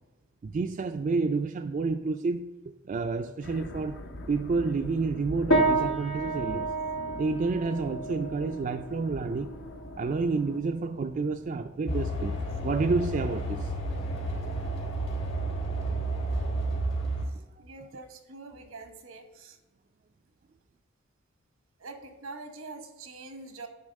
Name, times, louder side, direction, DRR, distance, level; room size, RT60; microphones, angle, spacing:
voice 1, 0.4-2.5 2.9-4.0 4.3-6.7 7.2-9.6 10.0-12.4 12.6-13.7 16.5-16.6, right 4 dB, 40° right, 0.3 m, -29 dB
sound 1, 3.4-10.6, left 2 dB, 55° left, 0.6 m, -43 dB
sound 2, 5.5-15.2, right 2 dB, 85° left, 1.2 m, -32 dB
sound 3, 11.9-17.2, right 1 dB, 70° left, 3.1 m, -31 dB
voice 2, 17.6-19.6 21.8-23.7, right 3 dB, 90° right, 1.0 m, -44 dB
9.6 x 3.8 x 6.4 m
head